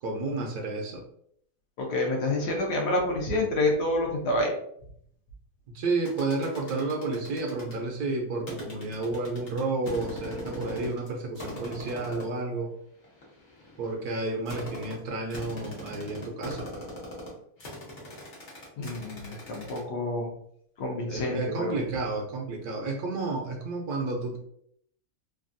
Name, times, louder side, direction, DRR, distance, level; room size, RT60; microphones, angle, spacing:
voice 1, 0.0-1.0 5.7-12.7 13.8-16.9 21.1-24.4, right 3 dB, 70° right, 1 dB, 1.0 m, -31 dB
voice 2, 1.8-4.5 18.8-20.3 20.8-21.8, left 2 dB, 70° left, 0 dB, 1.2 m, -28 dB
sound 1, 6.1-7.8 8.5-11.1 11.4-12.4 13.0-19.8, equal, 50° left, 0.6 m, -41 dB
3.3 x 2.2 x 2.5 m, 0.68 s
omnidirectional pair, 2.0 m